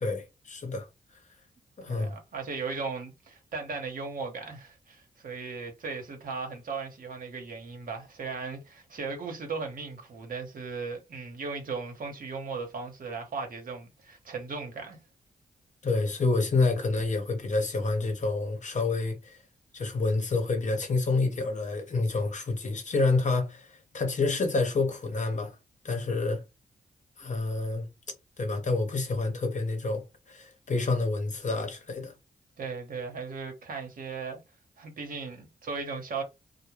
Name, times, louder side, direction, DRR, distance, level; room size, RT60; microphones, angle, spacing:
voice 1, 0.0-0.9 1.8-2.1 15.8-19.4 19.7-25.5 25.8-26.4 27.2-27.9 28.4-32.1, left 3 dB, 50° left, 0.8 m, -28 dB
voice 2, 1.9-15.0 32.6-34.4 34.8-36.2, right 4 dB, 65° right, 1.0 m, -37 dB
2.2 x 2.1 x 3.0 m
cardioid pair, 55°, 16 cm